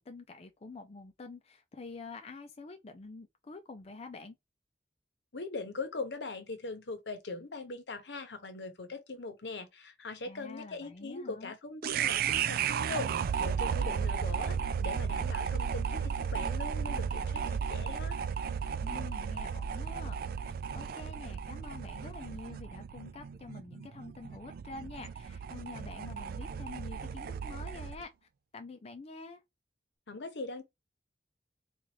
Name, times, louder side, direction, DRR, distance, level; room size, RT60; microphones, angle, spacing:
voice 1, 0.0-4.4 10.2-11.5 18.8-29.4, left 3 dB, 35° left, 0.4 m, -47 dB
voice 2, 5.3-18.2 30.1-30.6, left 3 dB, 75° left, 0.9 m, -41 dB
sound 1, 11.8-28.0, right 7 dB, 55° right, 0.3 m, -34 dB
4.0 x 2.4 x 3.1 m
head